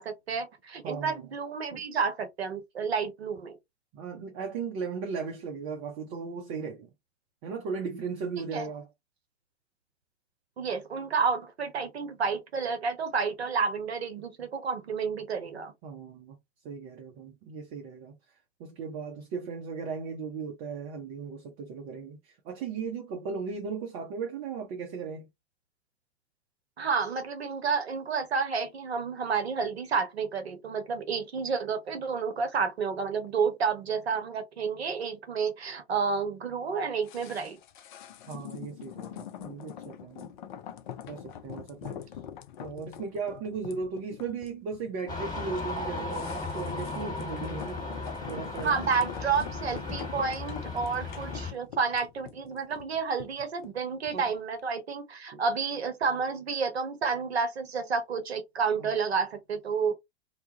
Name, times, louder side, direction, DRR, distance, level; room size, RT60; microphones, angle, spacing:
voice 1, 0.0-3.6 8.5-8.7 10.6-15.7 26.8-37.6 48.6-59.9, right 5 dB, 75° right, 0.7 m, -30 dB
voice 2, 0.8-1.3 1.7-1.8 3.9-6.9 7.4-8.9 15.8-16.4 16.6-18.2 18.6-25.3 38.3-40.3 41.1-42.1 42.6-47.8 48.3-48.8 54.1-54.3 55.3-55.4 58.8-58.9, right 5 dB, 30° right, 0.5 m, -37 dB
sound 1, 37.0-54.3 54.6-54.7, left 10 dB, 50° left, 0.4 m, -44 dB
sound 2, 45.1-51.5, left 3 dB, 10° left, 1.1 m, -36 dB
2.2 x 2.0 x 2.8 m
figure-of-eight pair, 100°, 32 cm